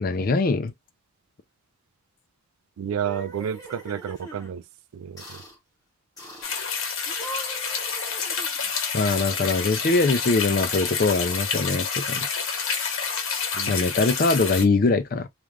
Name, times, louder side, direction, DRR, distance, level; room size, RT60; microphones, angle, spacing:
voice 1, 0.0-0.7 8.9-12.3 13.7-15.3, left 3 dB, 40° left, 0.4 m, -22 dB
sound 1, 2.8-4.5 5.2-5.6 6.2-6.6 7.1-8.8, right 1 dB, 15° left, 0.8 m, -41 dB
voice 2, 2.8-4.6 4.9-5.2 13.6-13.8, right 8 dB, 85° right, 0.3 m, -30 dB
sound 2, 6.4-14.6, left 6 dB, 75° left, 1.0 m, -28 dB
2.5 x 2.4 x 3.1 m
head